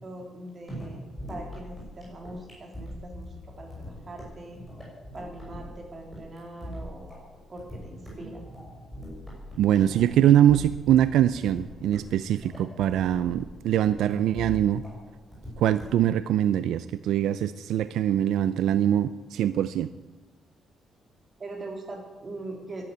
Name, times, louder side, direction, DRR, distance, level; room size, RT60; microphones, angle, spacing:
voice 1, 0.0-4.6 5.1-7.2 7.5-8.4 21.4-22.8, right 2 dB, 25° right, 1 dB, 3.3 m, -41 dB
sound 1, 0.7-16.1, equal, 5° left, 6.1 m, -42 dB
voice 2, 9.6-14.8 15.6-19.9, right 11 dB, 75° right, 13 dB, 0.5 m, -23 dB
12.0 x 11.5 x 9.3 m, 1.2 s
cardioid pair, 180°, 0 cm